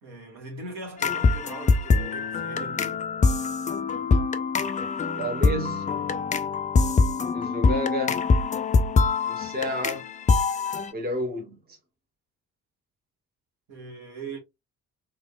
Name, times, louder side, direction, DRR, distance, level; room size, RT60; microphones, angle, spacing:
voice 1, 0.0-3.0 13.7-14.4, right 3 dB, 55° right, 1.8 m, -40 dB
sound 1, 1.0-10.9, left 4 dB, 20° left, 0.4 m, -24 dB
voice 2, 5.1-5.9 7.3-8.2 9.3-10.0 10.9-11.6, left 1 dB, 20° right, 1.1 m, -30 dB
3.7 x 3.3 x 2.3 m
figure-of-eight pair, 45°, 44 cm